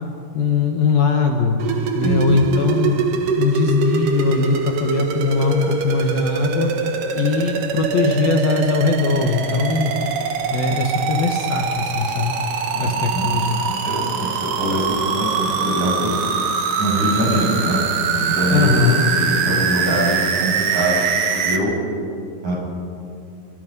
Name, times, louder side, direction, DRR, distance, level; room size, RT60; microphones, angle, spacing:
voice 1, 0.3-1.6 1.9-3.0 3.4-9.9 10.5-12.4 12.8-13.6 18.5-19.0, left 4 dB, 60° left, 2 dB, 3.0 m, -20 dB
sound 1, 1.6-21.6, right 6 dB, 60° right, 2.8 m, -23 dB
voice 2, 2.0-2.4 12.7-13.3 13.6-16.1 16.8-17.8 18.1-21.7 22.4-22.6, right 1 dB, 40° right, -3 dB, 9.1 m, -23 dB
29.5 x 26.0 x 5.5 m, 2.5 s
omnidirectional pair, 5.1 m